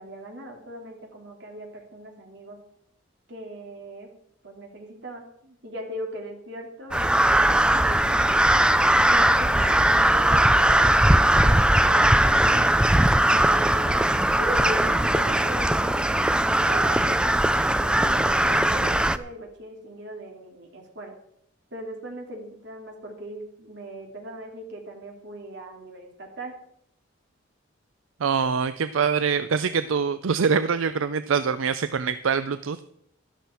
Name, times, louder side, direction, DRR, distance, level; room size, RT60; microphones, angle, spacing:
voice 1, 0.0-2.6 3.3-4.1 4.4-8.3 9.0-12.7 13.2-16.2 16.6-21.1 21.7-26.5, right 1 dB, 60° right, 1 dB, 2.9 m, -38 dB
Crow, 6.9-19.2, right 1 dB, 5° right, 0.4 m, -20 dB
voice 2, 28.2-32.8, right 6 dB, 80° right, 12 dB, 0.5 m, -24 dB
12.5 x 12.0 x 4.5 m, 0.72 s
head